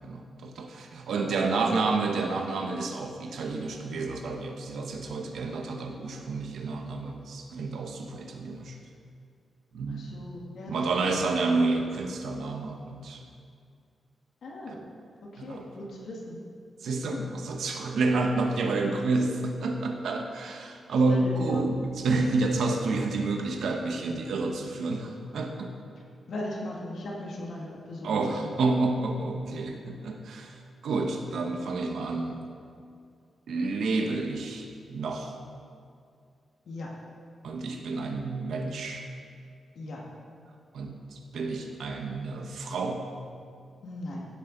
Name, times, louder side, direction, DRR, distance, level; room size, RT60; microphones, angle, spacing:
voice 1, 0.0-8.8 9.7-10.1 10.7-13.2 14.7-14.8 15.4-15.6 16.8-25.7 28.0-32.4 33.5-35.4 37.4-39.1 40.7-43.0, right 3 dB, 85° right, 3 dB, 1.0 m, -29 dB
voice 2, 1.1-1.8 2.2-2.3 9.9-10.8 11.1-11.2 14.4-14.8 15.2-16.4 17.1-17.3 21.1-21.6 26.3-28.5 36.7-36.9 39.7-40.0 43.8-44.3, left 1 dB, 65° left, -3 dB, 1.9 m, -38 dB
16.0 x 8.3 x 3.9 m, 2.3 s
wide cardioid pair, 170°, 0 cm